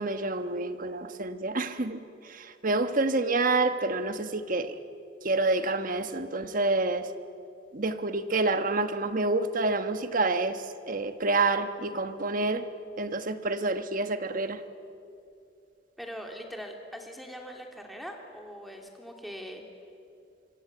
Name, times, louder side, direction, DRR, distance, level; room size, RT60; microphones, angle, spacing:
voice 1, 0.0-4.7 5.2-7.1 7.7-12.6 13.0-14.6, right 2 dB, 50° right, 9 dB, 1.3 m, -28 dB
voice 2, 16.0-19.6, equal, ahead, 2 dB, 3.0 m, -41 dB
25.5 x 24.0 x 8.1 m, 2.6 s
head